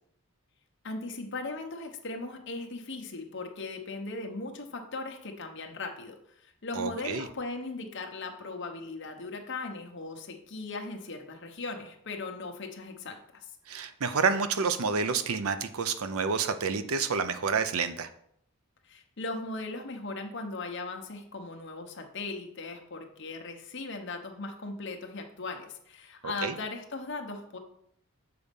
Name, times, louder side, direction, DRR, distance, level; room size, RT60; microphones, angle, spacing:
voice 1, 0.8-13.5 18.8-27.6, left 3 dB, 55° left, 3 dB, 1.0 m, -38 dB
voice 2, 6.7-7.3 13.7-18.1 26.2-26.6, right 5 dB, 75° right, 10 dB, 0.6 m, -29 dB
6.8 x 4.2 x 5.3 m, 0.71 s
head